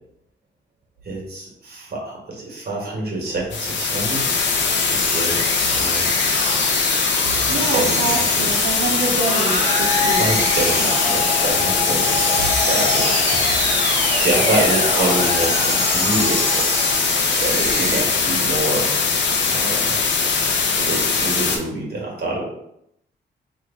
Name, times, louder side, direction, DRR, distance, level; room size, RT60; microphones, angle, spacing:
voice 1, 1.0-4.3 4.9-6.1 7.3-8.5 10.1-13.3 14.2-16.7 17.4-18.9 19.5-20.0 20.7-22.4, right 2 dB, 55° right, -3 dB, 1.5 m, -26 dB
sound 1, 3.5-21.6, left 5 dB, 70° left, 0.6 m, -21 dB
sound 2, 4.4-18.0, right 1 dB, 35° right, 1.1 m, -26 dB
voice 2, 7.5-10.4 10.8-11.0, right 3 dB, 75° right, -4 dB, 0.7 m, -26 dB
sound 3, 9.5-17.2, left 5 dB, 30° left, 0.6 m, -28 dB
3.1 x 2.5 x 3.6 m, 0.78 s
cardioid pair, 80°, 20 cm